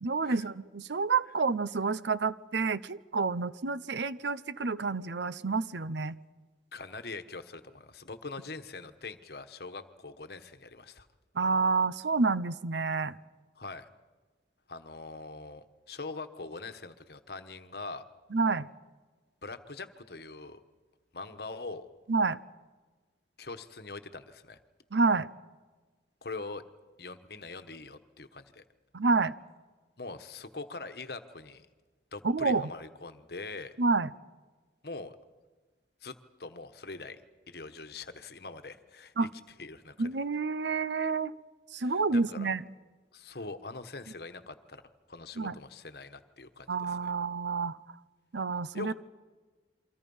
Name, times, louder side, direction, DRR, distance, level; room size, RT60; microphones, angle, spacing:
voice 1, 0.0-6.2 11.4-13.2 18.3-18.7 22.1-22.4 24.9-25.3 28.9-29.3 32.2-32.7 33.8-34.1 39.2-39.3 40.0-41.3 41.7-42.6 45.4-45.6 46.7-47.8 48.3-48.9, right 4 dB, 75° right, 16 dB, 0.8 m, -29 dB
voice 2, 6.7-11.1 13.6-13.8 14.7-18.0 19.4-20.6 21.1-21.8 23.4-24.6 26.2-26.6 27.0-28.6 30.0-31.7 32.1-33.8 34.8-35.1 36.0-37.2 37.5-39.3 39.6-40.1 41.8-42.5 43.1-44.8 45.1-47.1 48.7-48.9, left 3 dB, 60° left, 10 dB, 1.2 m, -43 dB
28.5 x 24.0 x 5.5 m, 1.3 s
head